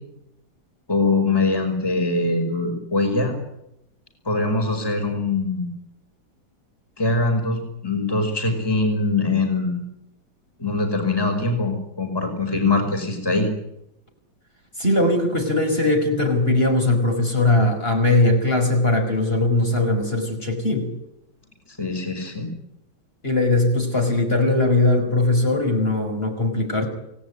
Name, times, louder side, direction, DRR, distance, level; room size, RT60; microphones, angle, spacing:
voice 1, 0.9-3.3 4.3-5.7 7.0-9.8 10.6-13.5 21.8-22.5, left 3 dB, 10° left, 4 dB, 5.3 m, -22 dB
voice 2, 14.8-20.9 23.2-26.9, left 2 dB, 25° left, 2 dB, 5.6 m, -20 dB
28.5 x 18.5 x 9.7 m, 0.82 s
omnidirectional pair, 2.2 m